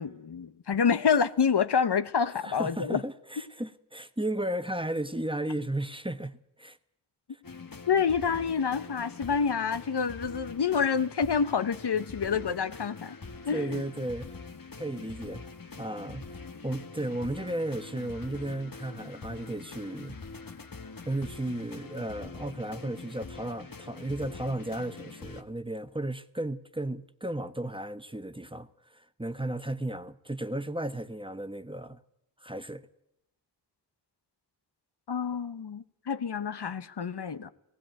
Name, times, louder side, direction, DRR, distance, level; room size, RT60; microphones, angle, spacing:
voice 1, 0.0-3.0 7.9-13.2 13.5-13.8 35.1-37.5, left 6 dB, 70° left, 1.0 m, -28 dB
voice 2, 2.3-6.8 13.5-14.3 14.8-15.4 15.8-20.2 21.0-32.0 32.4-32.8, right 1 dB, 10° right, 1.1 m, -34 dB
sound 1, 7.4-25.4, left 4 dB, 50° left, 1.5 m, -44 dB
18.0 x 16.0 x 9.1 m
wide cardioid pair, 55°, 42 cm